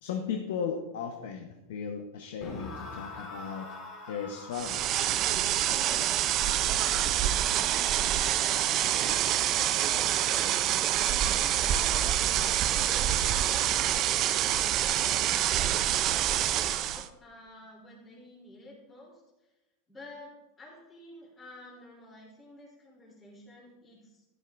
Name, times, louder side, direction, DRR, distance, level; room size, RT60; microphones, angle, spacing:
voice 1, 0.0-3.7 4.1-5.1, left 6 dB, 85° left, 4 dB, 0.9 m, -36 dB
sound 1, 2.4-9.5, left 2 dB, 40° left, 2.7 m, -46 dB
sound 2, 4.5-17.1, right 11 dB, 40° right, 0.5 m, -26 dB
voice 2, 8.9-16.1 16.7-19.5 19.9-24.2, left 1 dB, 20° left, -4 dB, 3.2 m, -51 dB
11.5 x 11.5 x 2.5 m, 1.0 s
supercardioid pair, 140°, 0 cm